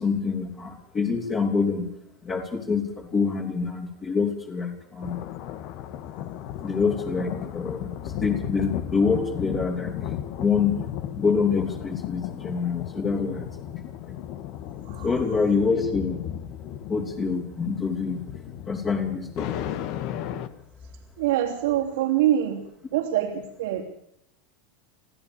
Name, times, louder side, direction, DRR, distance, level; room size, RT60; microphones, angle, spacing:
voice 1, 0.0-1.9 2.2-5.2 6.6-7.9 8.2-9.9 10.4-10.8 11.1-13.5 15.0-16.2 16.9-18.2 18.7-19.5, left 5 dB, 25° left, -1 dB, 3.6 m, -26 dB
sound 1, 5.0-20.5, left 11 dB, 55° left, 1.7 m, -35 dB
voice 2, 21.2-22.6 22.9-23.8, right 12 dB, 80° right, -1 dB, 3.2 m, -24 dB
24.5 x 15.5 x 7.0 m, 0.73 s
supercardioid pair, 130°, 0 cm